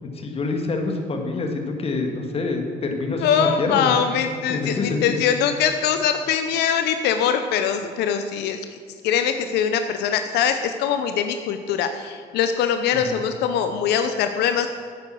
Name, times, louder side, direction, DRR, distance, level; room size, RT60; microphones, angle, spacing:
voice 1, 0.0-4.0 4.5-5.2 12.9-13.2, left 3 dB, 35° left, 3 dB, 1.7 m, -26 dB
voice 2, 3.2-8.7 9.0-14.7, left 8 dB, 80° left, 8 dB, 0.6 m, -22 dB
9.5 x 8.7 x 6.2 m, 2.1 s
cardioid pair, 110°, 17 cm